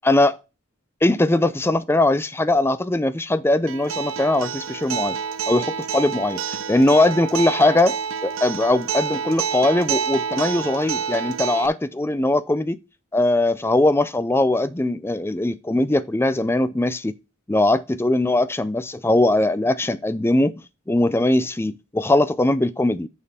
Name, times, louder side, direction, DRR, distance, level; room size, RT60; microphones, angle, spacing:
voice 1, 0.0-0.4 1.0-5.2 5.5-7.9 8.2-12.8 13.1-17.1 17.5-20.5 20.9-23.1, left 2 dB, 10° left, 0.4 m, -20 dB
Acoustic guitar, 3.7-11.7, right 6 dB, 75° right, 0.5 m, -28 dB
6.3 x 5.4 x 5.5 m
head